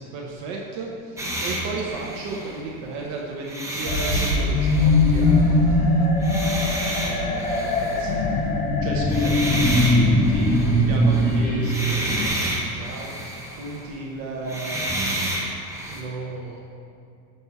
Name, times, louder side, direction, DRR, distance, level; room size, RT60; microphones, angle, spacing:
voice 1, 0.0-6.1 7.0-8.3 8.8-9.5 9.9-15.4 15.9-16.6, right 3 dB, 50° right, -1 dB, 0.9 m, -34 dB
sound 1, 1.2-3.0 3.4-5.5 6.2-8.2 9.1-13.9 14.3-16.0, right 1 dB, 10° right, 0.7 m, -30 dB
sound 2, 3.9-12.3, left 1 dB, 25° left, 0.9 m, -20 dB
6.9 x 5.5 x 4.6 m, 2.4 s
cardioid pair, 160°, 35 cm